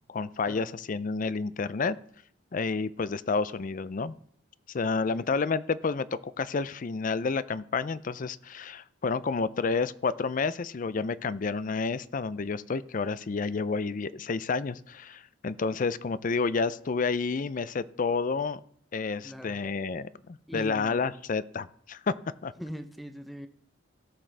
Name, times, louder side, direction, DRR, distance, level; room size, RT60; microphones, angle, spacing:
voice 1, 0.1-2.0 2.5-4.2 4.7-6.1 6.4-18.6 18.9-22.1 22.4-22.5, left 4 dB, 45° left, 16 dB, 0.5 m, -30 dB
voice 2, 19.2-19.6 20.5-21.2 22.6-23.5, equal, ahead, 7 dB, 0.7 m, -42 dB
17.5 x 6.2 x 3.4 m, 0.64 s
head